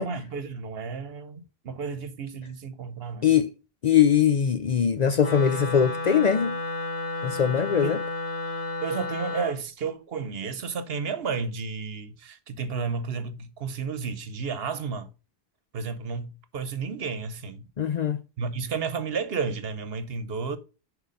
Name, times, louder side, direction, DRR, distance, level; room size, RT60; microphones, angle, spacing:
voice 1, 0.0-3.3 7.8-8.0 8.8-15.1 15.7-17.7 18.4-20.6, right 5 dB, 70° right, 1.1 m, -32 dB
voice 2, 3.8-6.6 7.2-8.0 17.8-18.2, left 8 dB, 55° left, 0.5 m, -21 dB
Wind instrument woodwind instrument, 5.2-9.5, left 3 dB, 80° left, 2.3 m, -32 dB
6.6 x 4.6 x 5.1 m
omnidirectional pair, 1.1 m